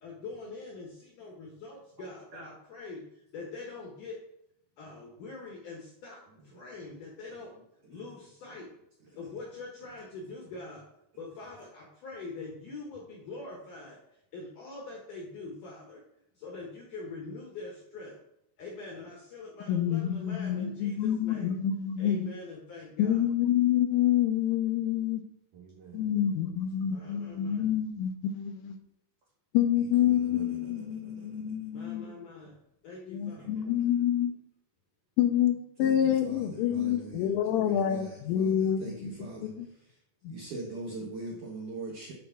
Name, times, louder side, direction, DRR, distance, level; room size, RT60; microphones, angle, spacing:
voice 1, 0.0-3.0 3.3-4.2 4.8-6.2 6.5-7.5 7.9-8.7 9.1-10.8 11.2-14.0 14.3-16.0 16.4-18.2 18.6-21.5 22.0-23.2 26.9-27.7 31.7-32.5 32.8-33.5, left 3 dB, 70° left, -2 dB, 2.0 m, -43 dB
voice 2, 2.0-2.6 6.5-6.9 7.9-8.0 8.5-8.6 9.0-9.1 25.5-26.5 30.0-31.6 33.3-33.8 35.8-39.5 40.3-42.1, right 3 dB, 70° right, -3 dB, 1.9 m, -43 dB
voice 3, 19.7-22.3 23.0-25.2 25.9-28.8 29.6-32.1 33.1-34.3 35.2-39.1 39.4-39.7 40.3-40.4, left 10 dB, 85° left, 7 dB, 3.3 m, -27 dB
9.6 x 4.2 x 5.8 m, 0.80 s
omnidirectional pair, 5.7 m